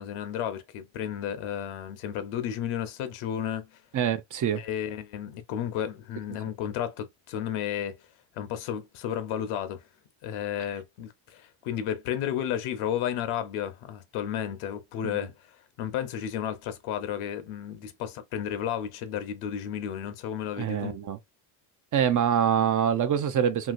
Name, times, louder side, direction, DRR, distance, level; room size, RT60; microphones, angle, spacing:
voice 1, 0.0-3.7 4.5-8.0 8.4-9.8 10.2-15.3 15.8-21.0, left 9 dB, 75° left, 0.8 m, -32 dB
voice 2, 3.9-4.6 15.0-15.2 20.6-21.2 21.9-23.7, right 8 dB, 40° right, 0.5 m, -25 dB
2.8 x 2.8 x 2.5 m
supercardioid pair, 90°, 50 cm